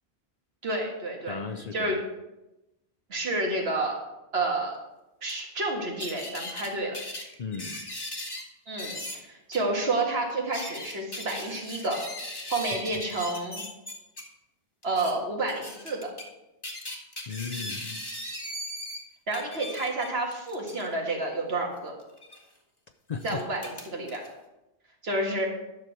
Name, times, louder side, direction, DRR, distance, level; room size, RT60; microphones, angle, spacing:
voice 1, 0.6-1.4 1.7-2.0 3.1-4.0 4.3-4.8 5.2-7.0 8.7-12.0 12.5-13.6 14.8-16.1 19.3-21.9 23.2-24.2 25.0-25.5, right 2 dB, 70° right, 0 dB, 2.0 m, -30 dB
voice 2, 1.3-2.0 7.4-7.8 12.9-13.0 17.3-18.0 23.1-23.4, left 5 dB, 45° left, 6 dB, 0.6 m, -36 dB
sound 1, 5.3-5.4 6.0-6.7 6.9-8.4 8.8-9.2 9.5-9.6 10.3-14.2 14.8-15.1 15.5-16.3 16.6-19.0 19.3-20.9 22.2-22.4 23.2-24.3, left 1 dB, 20° left, 1.4 m, -38 dB
10.5 x 6.6 x 4.5 m, 0.97 s
omnidirectional pair, 1.1 m